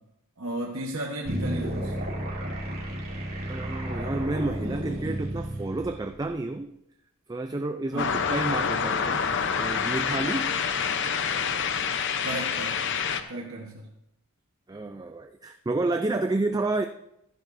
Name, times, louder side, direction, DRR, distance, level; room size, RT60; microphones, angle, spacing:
voice 1, 0.4-1.9 7.9-8.2 12.2-12.8 13.3-13.9, right 1 dB, 75° right, -1 dB, 1.2 m, -34 dB
sound 1, 1.2-6.3, right 1 dB, 45° right, 2.9 m, -32 dB
voice 2, 3.5-6.7 7.3-9.3 9.6-10.6 14.7-16.9, right 2 dB, 20° right, 6 dB, 0.4 m, -30 dB
sound 2, 8.0-13.2, left 6 dB, 55° left, 0.7 m, -27 dB
14.0 x 11.5 x 2.6 m, 0.80 s
head